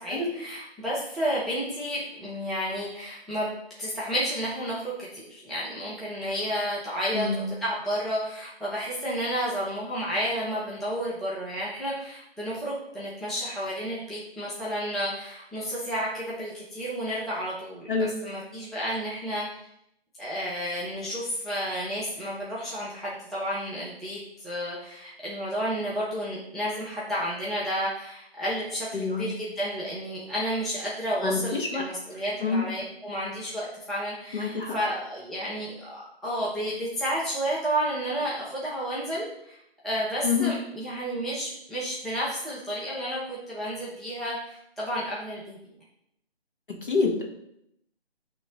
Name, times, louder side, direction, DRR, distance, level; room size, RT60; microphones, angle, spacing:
voice 1, 0.0-17.9 18.2-19.4 20.2-45.6, equal, ahead, -9 dB, 0.4 m, -31 dB
voice 2, 7.1-7.5 17.9-18.2 28.9-29.3 31.2-31.9 32.4-32.7 34.3-34.8 40.2-40.5 46.7-47.3, left 4 dB, 55° left, 0 dB, 1.4 m, -27 dB
8.8 x 3.0 x 3.6 m, 0.78 s
hypercardioid pair, 180°, 31 cm